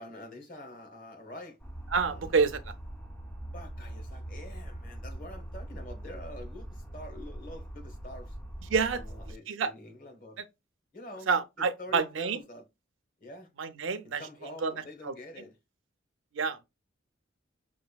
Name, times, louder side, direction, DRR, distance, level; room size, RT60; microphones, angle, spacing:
voice 1, 0.0-1.6 2.1-2.6 3.5-8.4 8.9-10.4 10.9-11.3 11.6-12.6 13.2-13.5 14.0-15.6, left 1 dB, 45° left, 1.3 m, -46 dB
sound 1, 1.6-9.3, right 1 dB, 5° left, 0.4 m, -42 dB
voice 2, 1.9-2.6 8.7-9.0 9.5-9.7 11.3-12.4 13.6-14.2 14.6-14.7 15.0-15.1 16.3-16.6, right 5 dB, 75° right, 0.5 m, -28 dB
5.9 x 2.5 x 2.3 m
head